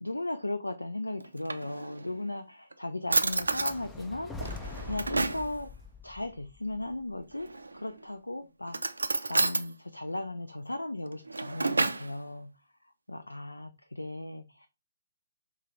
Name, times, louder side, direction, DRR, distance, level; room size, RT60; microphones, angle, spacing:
voice 1, 0.0-5.7 6.0-8.8 9.3-12.5 13.1-14.7, left 2 dB, 80° left, 10 dB, 0.3 m, -37 dB
Drawer open or close, 1.2-2.2 2.7-2.8 3.1-3.8 4.4-5.5 7.4-7.9 8.7-9.7 11.1-12.1, right 3 dB, 75° right, 0.4 m, -30 dB
sound 1, 3.2-7.5, left 4 dB, 10° left, 0.4 m, -44 dB
5.5 x 2.4 x 3.1 m, 0.29 s
figure-of-eight pair, 130°, 0 cm